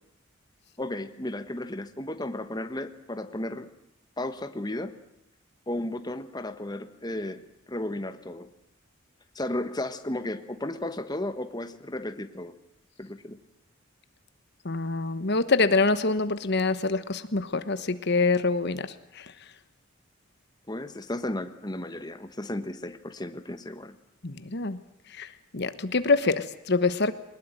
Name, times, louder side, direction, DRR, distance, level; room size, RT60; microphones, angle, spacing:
voice 1, 0.8-3.7 4.2-5.0 5.7-7.4 7.7-8.5 9.3-12.6 13.0-13.4 20.7-23.9, left 1 dB, 20° left, 9 dB, 1.3 m, -34 dB
voice 2, 14.6-18.9 19.2-19.3 24.2-24.8 25.1-25.3 25.5-27.1, left 3 dB, 55° left, 12 dB, 1.2 m, -25 dB
22.0 x 20.5 x 9.1 m, 0.80 s
head